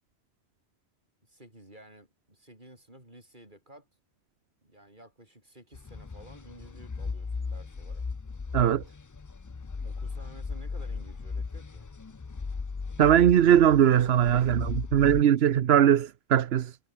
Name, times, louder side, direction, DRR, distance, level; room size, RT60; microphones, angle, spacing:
voice 1, 1.2-3.9 4.6-8.1 9.8-11.9, right 1 dB, 45° right, 8.2 m, -53 dB
sound 1, 5.7-15.2, left 4 dB, 30° left, 0.3 m, -37 dB
voice 2, 13.0-16.8, right 10 dB, 70° right, 1.0 m, -20 dB
omnidirectional pair, 1.1 m